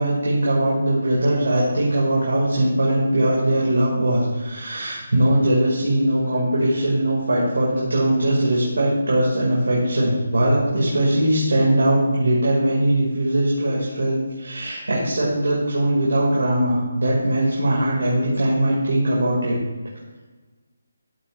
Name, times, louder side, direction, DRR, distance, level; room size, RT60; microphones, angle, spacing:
voice 1, 0.0-19.6, right 1 dB, 85° right, -5 dB, 2.5 m, -20 dB
13.5 x 6.1 x 2.6 m, 1.3 s
hypercardioid pair, 175°, 0 cm